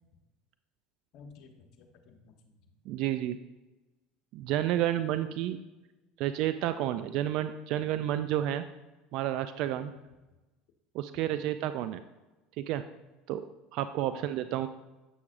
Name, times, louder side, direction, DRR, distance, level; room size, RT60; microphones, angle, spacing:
voice 1, 1.1-2.6 9.8-10.0 11.1-11.3 14.1-14.3, left 4 dB, 60° left, 4 dB, 1.0 m, -53 dB
voice 2, 2.9-3.4 4.3-5.6 6.2-8.6 9.1-9.9 10.9-12.0 12.6-12.8 13.3-13.4 13.7-14.7, right 12 dB, 60° right, 11 dB, 0.3 m, -30 dB
8.4 x 6.1 x 2.5 m, 1.1 s
hypercardioid pair, 85°, 0 cm